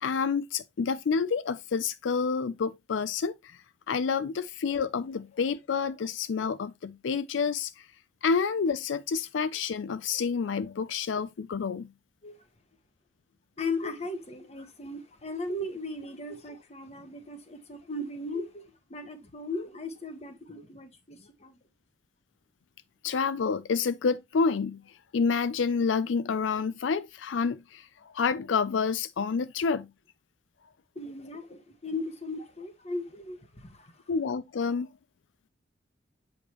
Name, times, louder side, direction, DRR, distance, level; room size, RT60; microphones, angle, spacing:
voice 1, 0.0-3.6 3.9-7.9 8.2-11.9 23.0-24.8 25.1-29.9 34.1-34.9, left 5 dB, 90° left, 0.4 m, -28 dB
voice 2, 13.6-18.6 18.9-21.6 30.9-34.0, left 2 dB, 35° left, 1.2 m, -37 dB
8.0 x 5.1 x 2.9 m
head